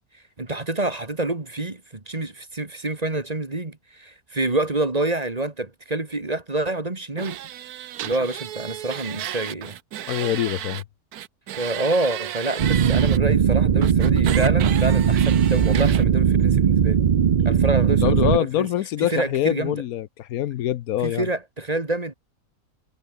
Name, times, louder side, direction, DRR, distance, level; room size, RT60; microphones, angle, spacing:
voice 1, 0.4-7.4 8.0-9.8 11.6-17.0 17.4-18.7 19.0-19.8 21.0-22.1, right 2 dB, 25° right, 1.9 m, -27 dB
sound 1, 7.2-10.8 11.1-13.2 13.8-16.0, right 12 dB, 80° right, 1.3 m, -33 dB
voice 2, 10.1-10.8 18.0-21.3, left 12 dB, 75° left, 1.1 m, -24 dB
sound 2, 12.6-18.4, right 8 dB, 50° right, 0.5 m, -19 dB
omnidirectional pair, 1.6 m